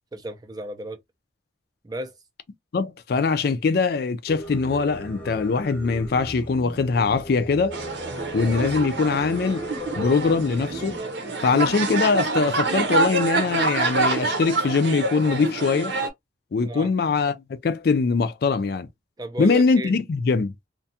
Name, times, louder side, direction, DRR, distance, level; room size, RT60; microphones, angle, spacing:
voice 1, 0.1-1.0 1.8-2.1 16.6-16.9 19.2-19.9, right 1 dB, 20° right, 0.4 m, -33 dB
voice 2, 2.7-7.8 8.3-9.7 10.0-11.0 11.4-15.9 16.5-17.3 17.6-18.9 19.4-20.5, left 4 dB, 55° left, 0.4 m, -22 dB
Singing, 4.3-11.0, left 1 dB, 5° left, 0.7 m, -38 dB
sound 1, 7.7-16.1, right 3 dB, 70° right, 0.8 m, -26 dB
2.5 x 2.2 x 2.7 m
head